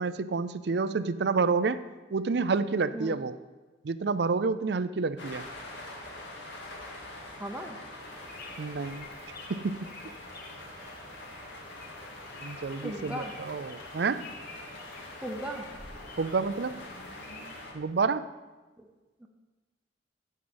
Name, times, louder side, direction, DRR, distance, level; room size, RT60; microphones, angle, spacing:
voice 1, 0.0-1.8 2.1-3.3 3.8-5.4 8.6-9.1 9.5-9.9 12.4-14.3 16.2-16.9 17.7-18.3, right 4 dB, 60° right, 14 dB, 0.5 m, -29 dB
sound 1, 5.2-17.7, left 1 dB, 75° left, 2.2 m, -44 dB
voice 2, 7.4-7.8 12.8-13.3 15.2-15.6 18.8-18.9, right 1 dB, 5° right, 1 dB, 0.8 m, -36 dB
sound 2, 8.0-17.6, left 3 dB, 50° left, 1.7 m, -50 dB
9.5 x 5.5 x 8.0 m, 1.2 s
head